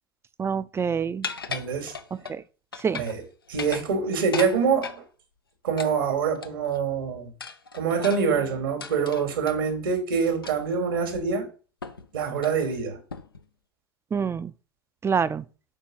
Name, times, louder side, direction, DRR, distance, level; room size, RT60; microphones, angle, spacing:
voice 1, 0.4-1.3 2.3-2.4 2.8-3.0 14.1-14.5 15.0-15.5, right 6 dB, 20° right, 0.6 m, -26 dB
sound 1, 1.2-2.4 2.7-3.2 3.5-5.0 5.8-6.8 7.4-9.6 10.4-10.7 11.1-11.2 11.8-12.1 12.4-12.6 13.1-13.4, left 5 dB, 90° left, 0.8 m, -37 dB
voice 2, 1.5-1.9 3.0-3.2 3.5-5.0 5.6-7.3 7.7-11.5 12.1-13.0, right 6 dB, 75° right, 2.7 m, -25 dB
7.3 x 5.3 x 6.5 m
figure-of-eight pair, 75°, 12 cm